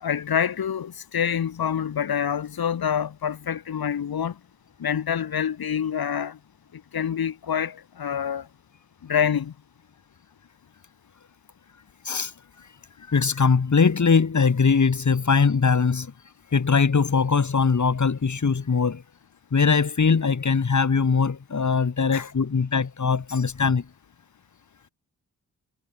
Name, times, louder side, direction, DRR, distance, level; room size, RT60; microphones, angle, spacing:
voice 1, 0.0-4.3 4.8-6.4 6.9-8.4 9.1-9.5 22.1-22.2, left 8 dB, 65° left, 2.0 m, -26 dB
voice 2, 13.1-16.1 16.5-19.0 19.5-23.8, left 5 dB, 50° left, 4.0 m, -21 dB
cardioid pair, 50°, 39 cm